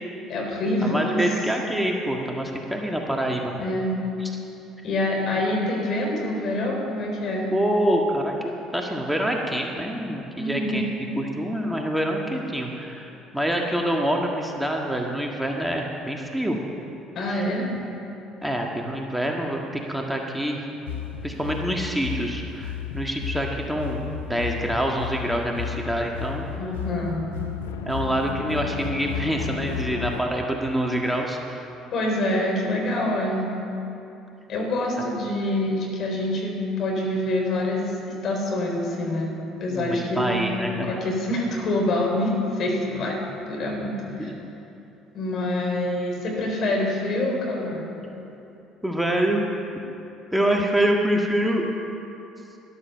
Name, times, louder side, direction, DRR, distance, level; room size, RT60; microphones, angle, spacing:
voice 1, 0.3-1.2 3.6-3.9 4.8-7.5 10.3-10.9 17.2-17.7 26.5-27.3 31.9-33.5 34.5-39.3 39.6-40.3 40.8-43.2 43.5-44.3 45.1-47.8, left 1 dB, 55° left, 0 dB, 3.8 m, -26 dB
voice 2, 0.8-3.6 4.2-4.3 7.5-10.8 11.2-16.6 17.3-17.5 18.4-20.6 21.2-24.0 24.3-26.5 27.8-31.7 39.7-40.9 44.2-44.4 48.8-49.4 50.3-51.7, right 1 dB, 5° right, 0 dB, 1.7 m, -26 dB
sound 1, 20.9-30.2, left 8 dB, 85° left, 0.6 m, -33 dB
12.5 x 11.5 x 6.6 m, 2.9 s
hypercardioid pair, 60°, 0 cm